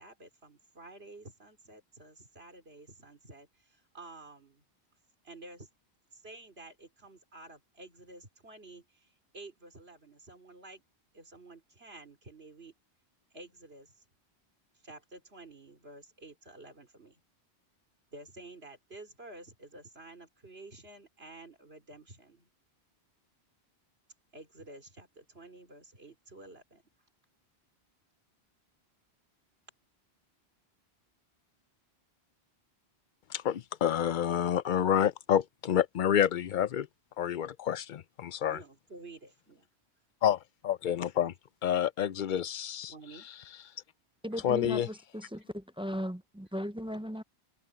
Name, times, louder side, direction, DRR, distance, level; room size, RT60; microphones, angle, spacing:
voice 1, 0.0-4.6 5.2-5.7 6.1-10.8 11.1-12.7 13.3-14.0 14.8-17.2 18.1-22.5 24.3-26.8 38.5-39.7 42.9-43.3, right 2 dB, 65° right, 3.9 m, -51 dB
voice 2, 33.3-36.9 37.2-38.6 40.2-41.3 41.6-42.9 44.4-44.9, left 9 dB, 55° left, 0.7 m, -28 dB
voice 3, 44.2-47.2, equal, 10° right, 0.4 m, -37 dB
open air
omnidirectional pair, 1.1 m